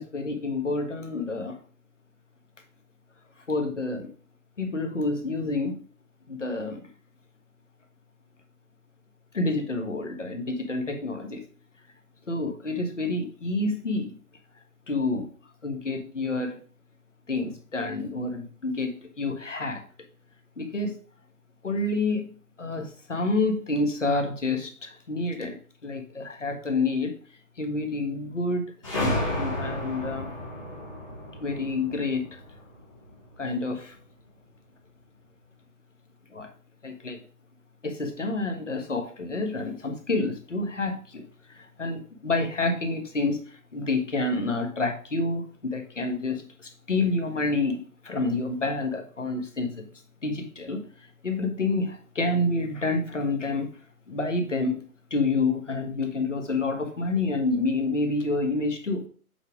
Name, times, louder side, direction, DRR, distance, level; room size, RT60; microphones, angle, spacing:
voice 1, 0.0-1.5 3.5-4.1 4.6-5.8 6.3-6.8 9.3-11.4 12.3-14.1 14.9-15.3 15.6-16.6 17.3-19.8 20.6-20.9 21.6-22.3 22.6-27.1 27.6-28.6 29.0-30.3 31.4-32.2 33.4-33.9 36.3-36.5 36.8-37.2 37.8-41.2 41.5-43.4 43.7-45.4 45.7-46.4 46.9-49.8 50.2-50.8 51.2-53.7 54.1-54.8 55.1-59.0, left 3 dB, 55° left, 4 dB, 1.5 m, -28 dB
sound 1, 28.8-33.3, left 1 dB, 20° left, 1.9 m, -32 dB
7.8 x 3.7 x 4.9 m, 0.41 s
figure-of-eight pair, 180°, 45 cm